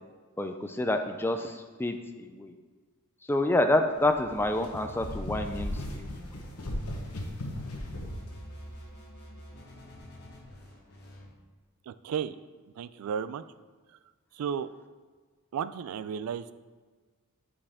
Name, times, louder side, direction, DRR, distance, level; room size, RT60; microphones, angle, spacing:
voice 1, 0.4-2.5 3.3-6.1, left 1 dB, 10° left, 6 dB, 0.3 m, -28 dB
sound 1, 4.0-8.3, left 1 dB, 90° left, 1.0 m, -37 dB
sound 2, 4.4-11.3, equal, 45° left, 1.4 m, -49 dB
voice 2, 11.9-12.4 12.8-13.4 14.3-14.7 15.5-16.5, right 7 dB, 75° right, 15 dB, 0.3 m, -33 dB
7.5 x 4.8 x 3.5 m, 1.4 s
head